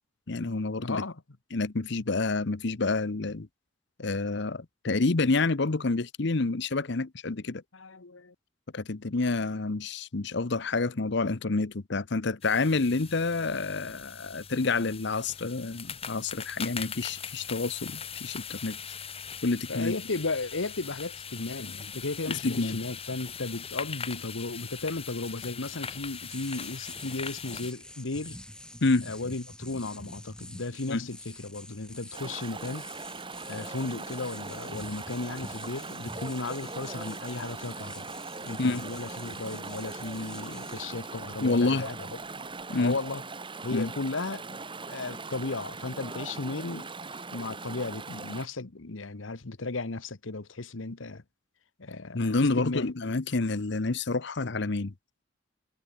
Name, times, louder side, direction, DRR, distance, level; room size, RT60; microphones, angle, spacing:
voice 1, 0.3-1.0 1.5-3.5 4.0-7.6 8.7-18.8 19.4-19.9 22.3-22.8 28.8-29.1 30.9-31.1 38.6-38.9 41.4-41.9 42.7-43.0 43.7-43.9 52.1-54.9, left 3 dB, 60° left, 0.9 m, -28 dB
voice 2, 0.8-1.2 7.7-8.3 19.7-28.4 29.1-32.9 33.5-38.1 38.4-42.1 42.8-43.2 43.6-44.6 44.9-51.2 51.8-52.9, left 3 dB, 85° left, 1.3 m, -35 dB
sound 1, 12.4-27.7, left 7 dB, 30° left, 3.1 m, -41 dB
sound 2, 24.9-42.9, left 1 dB, 5° left, 3.5 m, -48 dB
Chatter / Stream, 32.1-48.5, right 3 dB, 25° right, 2.6 m, -40 dB
head